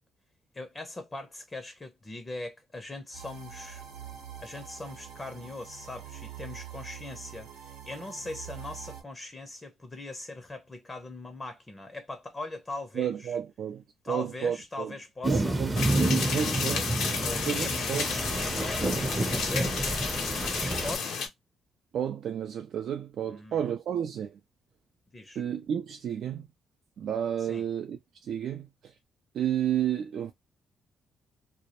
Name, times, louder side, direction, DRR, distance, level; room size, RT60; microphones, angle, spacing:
voice 1, 0.5-3.8 4.4-13.4 14.0-15.6 16.3-16.9 17.2-21.2 23.3-23.7 25.1-25.4 27.5-27.6, left 2 dB, 25° left, 0.5 m, -41 dB
sound 1, 3.1-9.0, right 9 dB, 85° right, 0.8 m, -45 dB
voice 2, 12.9-14.9 15.3-15.7 16.3-17.2 17.5-18.1 21.9-24.4 25.4-26.5 27.0-28.9 29.3-30.3, right 9 dB, 65° right, 0.3 m, -32 dB
sound 2, 15.2-21.0, right 2 dB, 20° right, 0.6 m, -29 dB
sound 3, 15.8-21.3, left 5 dB, 80° left, 0.6 m, -32 dB
2.2 x 2.0 x 2.8 m
cardioid pair, 90°, 0 cm